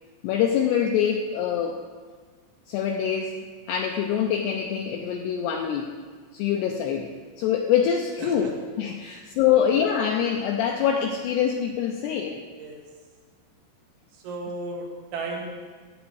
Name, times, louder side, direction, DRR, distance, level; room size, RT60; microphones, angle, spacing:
voice 1, 0.2-1.8 2.7-5.9 6.3-7.1 7.4-12.4, left 8 dB, 85° left, 2 dB, 2.4 m, -25 dB
voice 2, 8.2-8.5 9.1-9.2 12.6-12.8 14.2-15.5, right 2 dB, 75° right, -1 dB, 3.9 m, -34 dB
16.5 x 8.1 x 4.8 m, 1.5 s
omnidirectional pair, 5.6 m